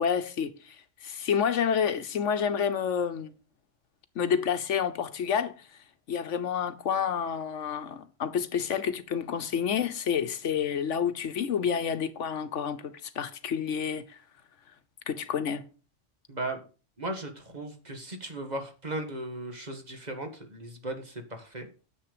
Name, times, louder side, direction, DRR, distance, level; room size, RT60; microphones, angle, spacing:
voice 1, 0.0-3.3 4.1-5.7 6.1-14.2 15.1-15.6, left 7 dB, 75° left, 1.2 m, -29 dB
voice 2, 16.3-16.6 17.0-21.7, right 2 dB, 35° right, 1.7 m, -37 dB
10.0 x 7.2 x 5.0 m
omnidirectional pair, 1.2 m